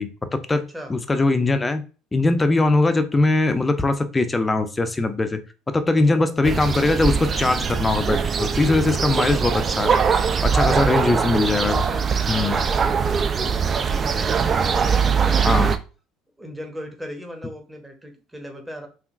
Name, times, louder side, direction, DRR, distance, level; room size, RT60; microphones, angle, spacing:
voice 1, 0.0-1.8 2.1-5.4 5.7-9.9 10.4-11.8 12.3-12.5 15.4-15.7, left 2 dB, 20° left, 9 dB, 0.5 m, -21 dB
voice 2, 5.9-6.2 10.5-11.0 11.6-13.5 13.8-15.7 16.4-18.9, equal, 10° right, 4 dB, 1.0 m, -37 dB
sound 1, 6.4-15.8, right 6 dB, 35° right, 0.4 m, -22 dB
3.6 x 2.4 x 2.5 m, 0.34 s
hypercardioid pair, 65°, 0 cm